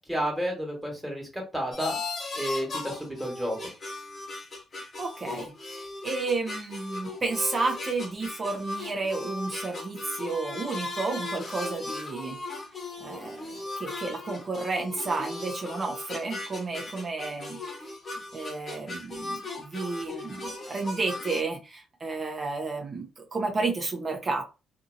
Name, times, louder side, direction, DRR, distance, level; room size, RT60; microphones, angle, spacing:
voice 1, 0.1-2.0 2.4-3.6, equal, 5° right, 0 dB, 1.5 m, -31 dB
sound 1, 1.7-21.4, left 2 dB, 40° left, 1.0 m, -37 dB
voice 2, 5.0-12.4 13.0-17.6 18.3-24.4, right 3 dB, 35° right, 1 dB, 0.7 m, -32 dB
2.7 x 2.7 x 2.6 m, 0.29 s
cardioid pair, 90°, 0 cm